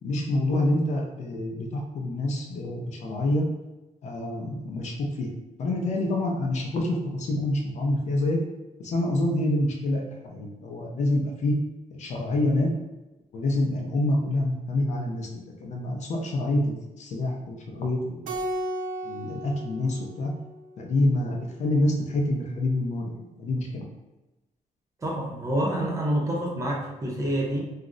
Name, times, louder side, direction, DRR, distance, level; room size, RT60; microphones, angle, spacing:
voice 1, 0.0-3.5 4.0-5.3 5.6-8.4 8.8-11.6 11.9-12.7 13.3-18.2 19.0-20.3 20.8-23.9, left 1 dB, 55° left, 0 dB, 0.5 m, -27 dB
Keyboard (musical), 18.3-20.9, right 1 dB, 75° right, 0.4 m, -34 dB
voice 2, 25.0-27.6, right 1 dB, 25° right, -2 dB, 0.5 m, -27 dB
2.4 x 2.0 x 3.7 m, 1.0 s
wide cardioid pair, 165°, 14 cm